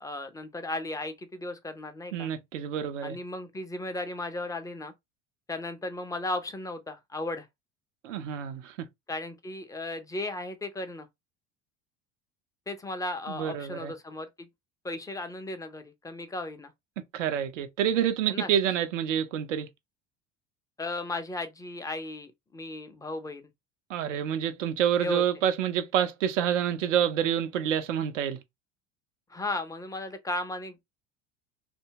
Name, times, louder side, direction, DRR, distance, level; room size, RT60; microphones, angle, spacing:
voice 1, 0.0-2.3 3.0-4.9 5.5-7.5 9.1-11.1 12.7-14.5 14.8-16.7 18.3-18.5 20.8-23.4 25.0-25.2 29.3-30.8, left 2 dB, 10° left, 0.5 m, -35 dB
voice 2, 2.1-3.2 8.0-8.7 13.3-13.9 17.1-19.7 23.9-28.4, right 9 dB, 80° right, 0.6 m, -28 dB
2.7 x 2.2 x 2.7 m
hypercardioid pair, 75°, 37 cm